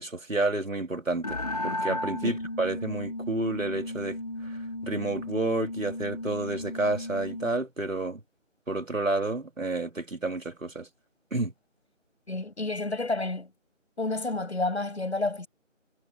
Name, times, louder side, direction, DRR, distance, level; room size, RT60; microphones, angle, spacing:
voice 1, 0.0-8.2 8.7-10.9 11.3-11.5, right 2 dB, 85° right, 4.0 m, -30 dB
sound 1, 1.2-7.6, left 1 dB, 30° left, 1.6 m, -35 dB
voice 2, 12.3-13.5 14.0-15.5, left 2 dB, 60° left, 7.9 m, -30 dB
figure-of-eight pair, 175°, 38 cm